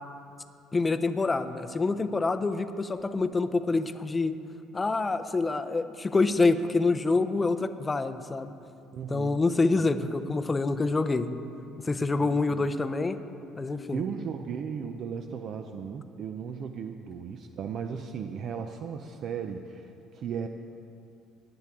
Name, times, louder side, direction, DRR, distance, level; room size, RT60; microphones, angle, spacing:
voice 1, 0.7-4.4 4.7-8.5 9.1-11.3 11.8-13.2 13.5-14.0, left 3 dB, 20° left, 11 dB, 0.6 m, -26 dB
voice 2, 8.9-9.4 9.7-10.0 12.0-12.7 13.9-20.5, right 7 dB, 50° right, 6 dB, 0.5 m, -36 dB
18.0 x 9.8 x 3.6 m, 2.6 s
cardioid pair, 120°, 0 cm